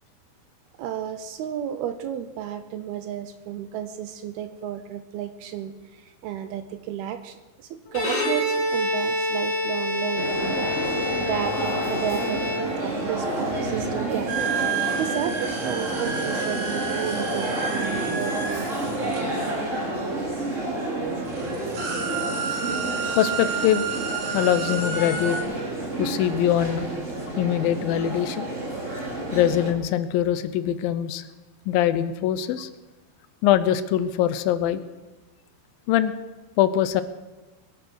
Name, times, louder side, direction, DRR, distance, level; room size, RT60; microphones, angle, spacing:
voice 1, 0.8-14.5 15.0-19.2, right 9 dB, 75° right, 10 dB, 2.5 m, -33 dB
Bowed string instrument, 7.9-13.1, left 1 dB, 35° left, 2.3 m, -27 dB
sound 1, 10.2-29.7, right 2 dB, 25° right, 2.1 m, -30 dB
sound 2, 14.3-20.0 20.8-20.9 21.2-25.4, right 5 dB, 45° right, 2.8 m, -30 dB
voice 2, 23.1-23.9 24.3-25.4 26.0-26.9 27.4-28.5 29.3-31.2 31.7-32.7 33.4-34.8 35.9-36.1 36.6-37.0, left 11 dB, 75° left, 13 dB, 2.2 m, -22 dB
22.5 x 9.6 x 6.4 m, 1.1 s
omnidirectional pair, 4.8 m